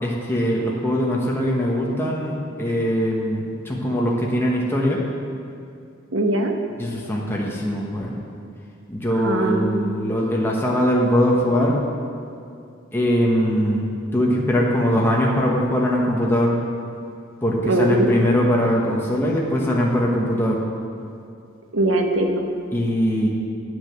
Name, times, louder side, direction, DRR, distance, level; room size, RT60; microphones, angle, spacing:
voice 1, 0.0-5.0 6.8-8.1 8.9-11.8 12.9-16.5 17.4-20.6 22.7-23.3, equal, 10° left, -3 dB, 1.1 m, -21 dB
voice 2, 6.1-6.5 9.2-10.0 17.6-18.1 21.7-22.4, right 1 dB, 75° right, 3 dB, 1.1 m, -21 dB
9.7 x 6.2 x 7.4 m, 2.4 s
head